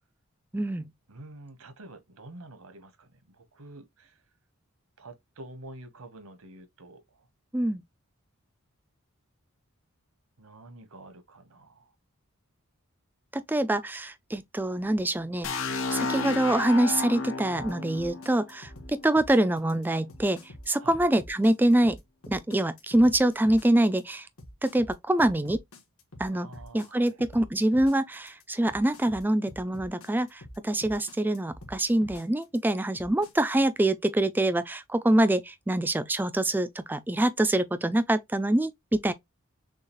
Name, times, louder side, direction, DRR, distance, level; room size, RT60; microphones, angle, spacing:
voice 1, 0.5-0.9 7.5-7.8 13.3-20.4 20.7-22.0 22.3-24.3 24.6-25.6 26.2-26.5 26.7-39.1, right 1 dB, 10° right, 0.3 m, -25 dB
voice 2, 1.1-4.2 5.0-7.0 10.4-11.9 20.8-21.0 26.3-27.2, right 2 dB, 80° right, 1.1 m, -48 dB
sound 1, 15.4-19.3, left 3 dB, 65° left, 0.8 m, -32 dB
sound 2, 17.5-33.3, left 1 dB, 80° left, 1.4 m, -46 dB
6.4 x 2.4 x 2.9 m
head